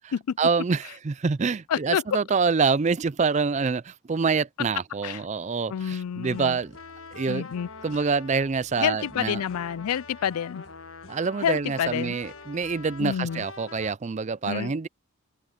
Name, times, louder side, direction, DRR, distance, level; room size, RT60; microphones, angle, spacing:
voice 1, 0.0-6.8 7.1-7.5 7.8-9.4 11.1-14.9, right 5 dB, 30° right, 0.4 m, -26 dB
voice 2, 1.7-2.0 5.0-5.2 5.7-6.6 7.3-7.7 8.8-10.6 11.4-12.2 13.0-13.4 14.5-14.7, left 8 dB, 90° left, 0.4 m, -28 dB
sound 1, 6.0-13.9, left 4 dB, 70° left, 1.3 m, -45 dB
open air
head